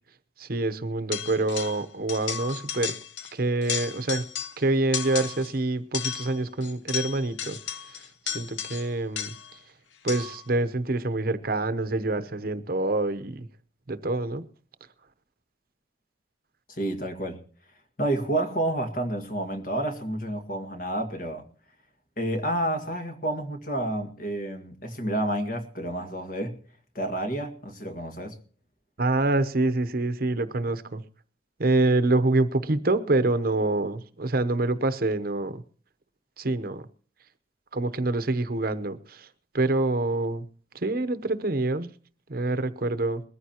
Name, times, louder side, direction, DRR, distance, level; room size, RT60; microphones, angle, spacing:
voice 1, 0.4-2.9 3.3-4.2 4.6-7.6 8.3-9.3 10.0-13.5 13.9-14.4 29.0-31.0 31.6-35.6 36.4-36.8 37.7-39.3 39.5-40.5 40.7-41.9 42.3-43.2, right 2 dB, 50° right, 0.9 m, -26 dB
sound 1, 1.1-1.8 2.1-3.3 3.6-4.6 4.9-5.5 5.9-9.6 10.1-10.5, left 8 dB, 75° left, 0.8 m, -34 dB
voice 2, 16.7-17.4 18.0-21.5 22.2-26.6 26.9-28.4, right 1 dB, 45° left, 2.0 m, -29 dB
21.5 x 14.0 x 3.0 m
head